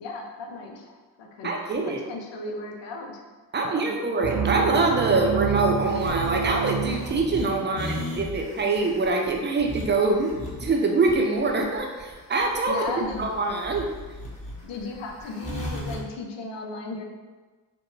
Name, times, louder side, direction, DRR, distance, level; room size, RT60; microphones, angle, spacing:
voice 1, 0.0-3.2 3.6-3.9 7.5-8.1 12.7-13.3 14.6-17.0, left 2 dB, 65° left, 2 dB, 0.6 m, -36 dB
voice 2, 1.4-2.0 3.5-10.3 10.6-12.8 13.2-13.9, right 3 dB, 25° right, 1 dB, 0.5 m, -24 dB
sound 1, 4.2-7.8, right 6 dB, 65° right, 0.7 m, -28 dB
sound 2, 4.9-16.0, left 1 dB, 15° left, 1.1 m, -36 dB
2.7 x 2.2 x 2.6 m, 1.3 s
hypercardioid pair, 40°, 46 cm